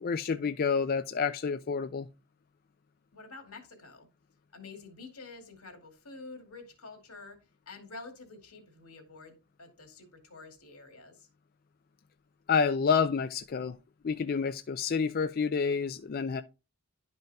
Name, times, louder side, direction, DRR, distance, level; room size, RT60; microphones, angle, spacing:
voice 1, 0.0-2.1 12.5-13.8 14.0-16.4, left 5 dB, 40° left, 0.4 m, -29 dB
voice 2, 3.1-4.1 4.5-7.4 7.7-11.3, left 3 dB, 85° left, 2.3 m, -48 dB
11.5 x 5.4 x 2.3 m
head